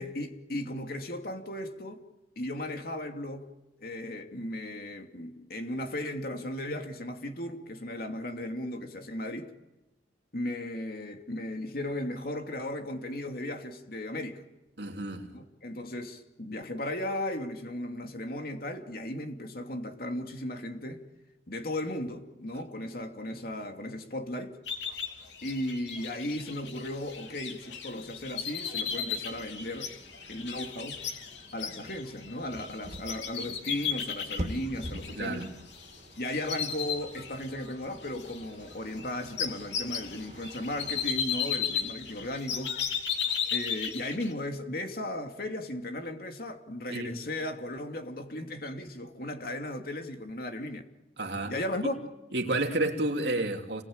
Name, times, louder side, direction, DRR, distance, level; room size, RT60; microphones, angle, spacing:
voice 1, 0.0-2.1 2.4-3.5 3.8-9.5 10.3-14.4 15.3-21.0 21.5-24.6 25.4-29.9 30.3-31.0 31.5-35.5 36.2-42.8 43.5-50.8 51.5-52.0, left 1 dB, 55° left, 2.8 m, -36 dB
voice 2, 14.8-15.3 35.1-35.5 46.9-47.1 51.2-51.5 52.3-53.8, right 2 dB, 70° right, 3.2 m, -30 dB
sound 1, 24.7-36.0 36.3-37.7 38.0-44.3, left 7 dB, 85° left, 3.3 m, -35 dB
sound 2, 28.8-41.1, equal, 40° right, 2.3 m, -46 dB
29.0 x 22.0 x 8.9 m
head